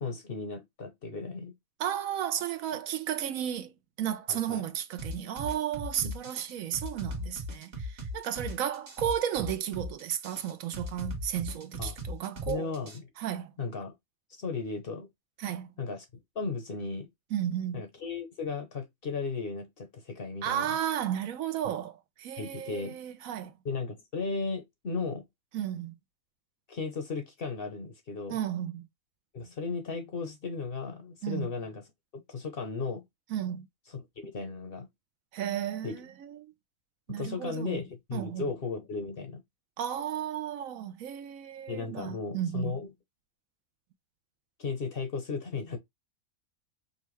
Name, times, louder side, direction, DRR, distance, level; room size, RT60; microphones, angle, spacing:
voice 1, 0.0-1.5 4.3-4.6 6.0-6.2 11.8-12.0 12.5-13.0 13.6-13.9 14.3-15.1 15.8-16.0 16.3-17.1 17.7-20.7 22.4-23.0 23.6-25.3 26.7-28.4 29.3-31.8 32.1-33.0 33.9-34.9 35.8-36.0 37.1-39.4 41.7-42.9 44.6-45.8, left 4 dB, 50° left, 0.8 m, -35 dB
voice 2, 1.8-3.7 4.0-12.7 13.2-13.5 15.4-15.7 17.3-17.8 20.4-23.5 25.5-26.0 28.3-28.8 31.2-31.5 33.3-33.7 35.3-36.5 37.1-37.8 38.1-38.5 39.8-42.8, right 10 dB, 75° right, 1.0 m, -33 dB
sound 1, 5.0-13.0, equal, 50° right, 1.6 m, -38 dB
5.4 x 2.3 x 3.1 m
omnidirectional pair, 1.5 m